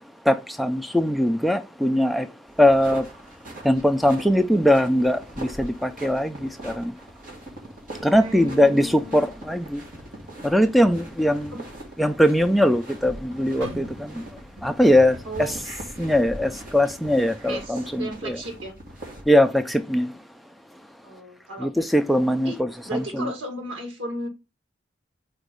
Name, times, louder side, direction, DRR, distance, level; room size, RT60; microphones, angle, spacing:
voice 1, 0.3-2.3 2.6-3.0 3.6-6.8 8.0-9.8 10.4-11.5 12.0-14.2 14.6-15.2 16.0-18.4 19.3-20.1 21.6-23.3, equal, ahead, 0.3 m, -21 dB
sound 1, 2.5-19.2, right 1 dB, 45° right, 1.8 m, -41 dB
voice 2, 8.1-9.3 11.5-11.6 15.2-15.5 17.5-18.7 21.0-21.7 22.4-22.6 22.8-24.3, right 1 dB, 85° right, 1.9 m, -35 dB
sound 2, 13.6-17.6 18.0-18.3 18.9-19.2, right 1 dB, 60° right, 1.5 m, -45 dB
4.5 x 4.1 x 5.1 m
head